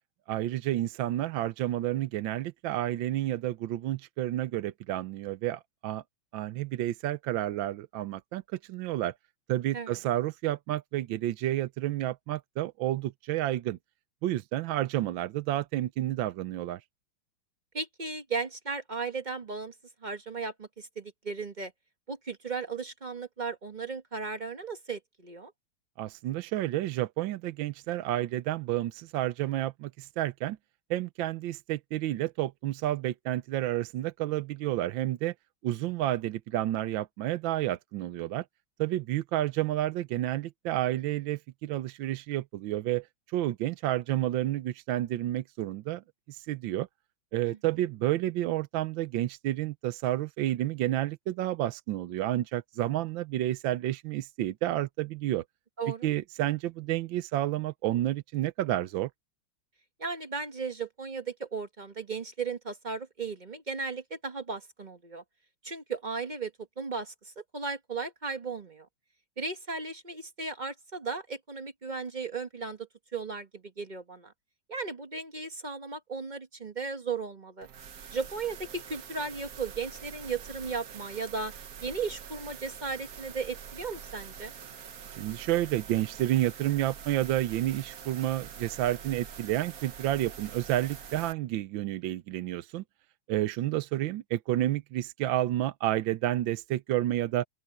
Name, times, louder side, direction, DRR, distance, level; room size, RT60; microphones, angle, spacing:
voice 1, 0.3-6.0 6.3-9.1 9.5-13.8 14.2-16.8 26.0-30.6 30.9-35.3 35.6-38.4 38.8-43.1 43.3-46.9 47.3-55.4 56.0-59.1 85.1-92.8 93.3-97.4, right 14 dB, 75° right, 1.4 m, -30 dB
voice 2, 17.7-19.7 20.0-21.7 22.1-25.5 47.4-47.6 55.8-56.1 60.0-65.2 65.6-68.9 69.4-74.3 74.7-77.7 78.1-81.5 81.8-84.5, right 4 dB, 30° right, 1.0 m, -36 dB
sound 1, 77.6-91.3, right 8 dB, 55° right, 1.2 m, -45 dB
open air
omnidirectional pair, 2.2 m